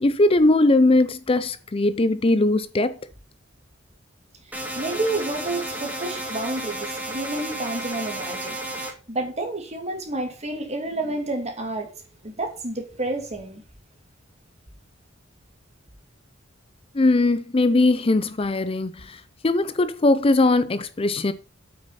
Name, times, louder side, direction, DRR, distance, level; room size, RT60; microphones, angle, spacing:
voice 1, 0.0-3.0 16.9-21.3, left 2 dB, 30° left, 0.5 m, -20 dB
sound 1, 4.5-8.9, right 1 dB, 10° right, 2.4 m, -32 dB
voice 2, 4.5-11.9 12.2-13.6, right 2 dB, 35° right, 2.6 m, -30 dB
8.3 x 6.6 x 5.6 m
head